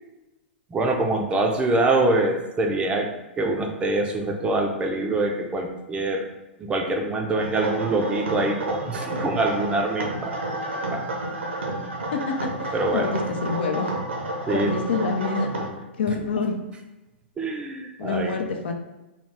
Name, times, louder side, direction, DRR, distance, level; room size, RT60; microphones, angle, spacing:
voice 1, 0.7-6.3 6.6-10.6 10.9-11.0 12.7-13.1 14.5-14.7 16.4-16.5 17.4-18.3, right 2 dB, 15° right, 2 dB, 0.5 m, -25 dB
sound 1, 7.4-15.7, right 2 dB, 80° right, 0.8 m, -30 dB
voice 2, 12.6-13.9 14.5-15.5 16.0-16.6 18.0-18.7, left 4 dB, 65° left, 4 dB, 0.6 m, -27 dB
3.9 x 2.3 x 3.4 m, 1.0 s
figure-of-eight pair, 110°, 6 cm